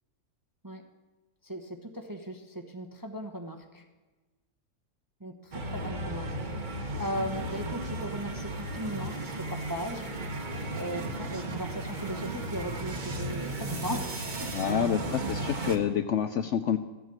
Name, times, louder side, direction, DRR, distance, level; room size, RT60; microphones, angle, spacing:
voice 1, 1.4-3.8 5.2-6.3 7.0-10.0 10.4-15.2, equal, 20° right, 5 dB, 0.7 m, -38 dB
sound 1, 5.5-15.8, right 2 dB, 35° right, 1.1 m, -35 dB
voice 2, 14.5-16.8, left 9 dB, 65° left, 9 dB, 0.7 m, -28 dB
13.5 x 8.1 x 7.5 m, 1.2 s
omnidirectional pair, 1.6 m